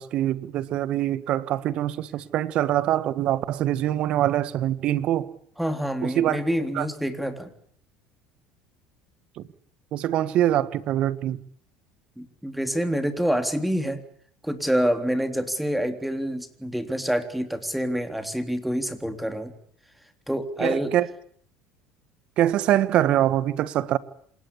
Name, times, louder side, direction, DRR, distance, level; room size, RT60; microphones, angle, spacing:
voice 1, 0.0-5.3 6.0-6.4 6.7-6.8 9.9-11.4 20.6-21.1 22.4-24.0, right 12 dB, 55° right, 16 dB, 1.6 m, -24 dB
voice 2, 5.6-7.5 12.2-14.0 14.4-19.5 20.3-20.9, equal, 5° right, 8 dB, 3.5 m, -27 dB
27.0 x 19.5 x 8.5 m, 0.62 s
supercardioid pair, 85°, 2 cm